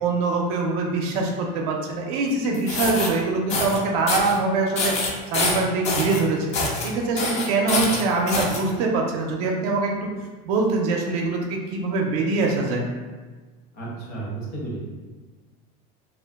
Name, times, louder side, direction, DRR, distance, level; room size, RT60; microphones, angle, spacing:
voice 1, 0.0-6.5 6.8-9.9 10.4-12.8, right 3 dB, 80° right, 0 dB, 0.5 m, -24 dB
sound 1, 2.5-3.1 3.5-3.8 4.1-4.4 4.8-6.2 6.5-6.9 7.2-8.6, left 3 dB, 35° left, 0.5 m, -25 dB
voice 2, 13.7-14.8, right 3 dB, 55° left, -5 dB, 1.1 m, -32 dB
2.4 x 2.1 x 3.4 m, 1.3 s
cardioid pair, 145°, 19 cm